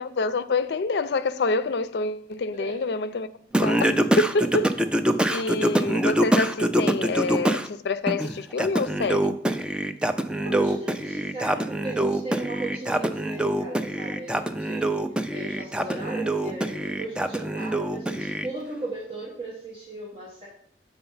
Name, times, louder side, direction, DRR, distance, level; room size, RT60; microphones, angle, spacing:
voice 1, 0.0-3.3 3.6-4.7 5.3-9.4, left 3 dB, 70° left, 0.4 m, -27 dB
Singing, 3.5-7.7 8.1-18.5, right 1 dB, 5° right, 0.3 m, -25 dB
voice 2, 10.4-20.5, right 2 dB, 30° right, 1.4 m, -36 dB
6.8 x 4.4 x 5.5 m
head